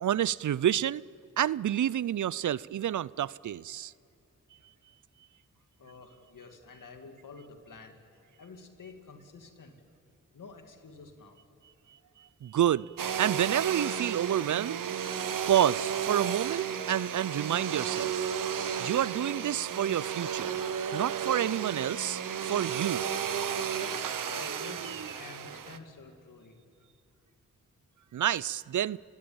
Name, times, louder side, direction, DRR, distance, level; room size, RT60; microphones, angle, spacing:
voice 1, 0.0-1.0 1.4-3.9 12.4-12.9 13.2-14.8 15.5-18.1 18.8-20.6 20.9-23.0 28.1-29.0, right 11 dB, 70° right, 0.5 m, -29 dB
voice 2, 5.8-8.0 8.4-9.7 10.3-11.4 24.2-26.6, left 4 dB, 80° left, 2.5 m, -49 dB
Domestic sounds home sounds, 13.0-25.8, right 8 dB, 90° right, 0.9 m, -33 dB
29.5 x 17.0 x 8.8 m
cardioid pair, 45°, 31 cm